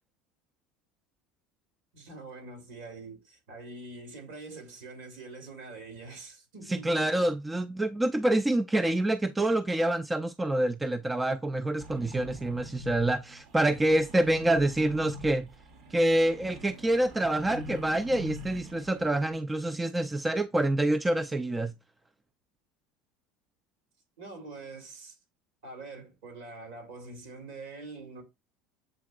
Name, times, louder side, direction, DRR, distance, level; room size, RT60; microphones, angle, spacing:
voice 1, 1.9-7.0 24.2-25.2 25.6-28.2, right 3 dB, 75° right, 1.9 m, -44 dB
voice 2, 6.7-15.5 15.9-21.7, right 1 dB, 15° right, 0.3 m, -27 dB
sound 1, 11.8-19.3, right 1 dB, 60° right, 1.0 m, -45 dB
7.7 x 2.9 x 2.4 m
hypercardioid pair, 85°, 0 cm